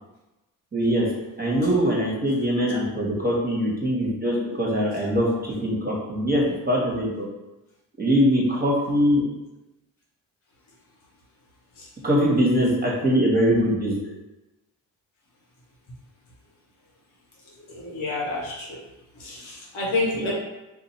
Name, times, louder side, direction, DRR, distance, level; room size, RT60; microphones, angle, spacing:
voice 1, 0.7-1.1 1.4-7.3 8.0-9.2 12.0-14.1 20.2-20.3, equal, 20° right, -4 dB, 1.4 m, -22 dB
voice 2, 17.5-18.8 19.1-20.3, left 2 dB, 75° left, -4 dB, 1.2 m, -29 dB
2.7 x 2.7 x 4.1 m, 1.0 s
supercardioid pair, 45°, 48 cm